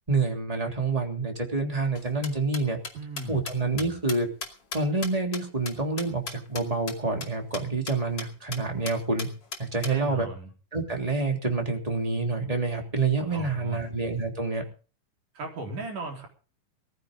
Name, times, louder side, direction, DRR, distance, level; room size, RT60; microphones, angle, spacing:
voice 1, 0.1-2.8 3.3-4.3 4.7-9.3 9.6-10.3 10.7-14.6, right 3 dB, 10° right, 2 dB, 2.8 m, -27 dB
sound 1, 2.0-6.6 6.9-7.0 7.2-7.3 7.5-7.6 7.9-8.3 8.5-8.6 8.9-9.9, left 4 dB, 35° left, 2.6 m, -36 dB
voice 2, 2.9-3.4 9.9-10.5 13.3-13.8 15.4-16.3, right 2 dB, 60° right, 1 dB, 5.5 m, -36 dB
20.0 x 15.0 x 3.8 m, 0.36 s
omnidirectional pair, 4.2 m